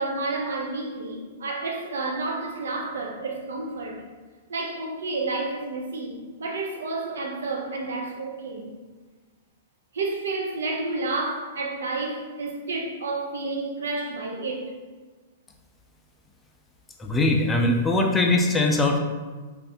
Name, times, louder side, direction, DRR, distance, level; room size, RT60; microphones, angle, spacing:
voice 1, 0.0-4.0 4.5-8.7 9.9-14.7, right 3 dB, 85° right, 1 dB, 0.6 m, -30 dB
voice 2, 17.0-19.0, left 2 dB, 15° left, 2 dB, 0.4 m, -21 dB
2.6 x 2.4 x 3.4 m, 1.4 s
hypercardioid pair, 130°, 0 cm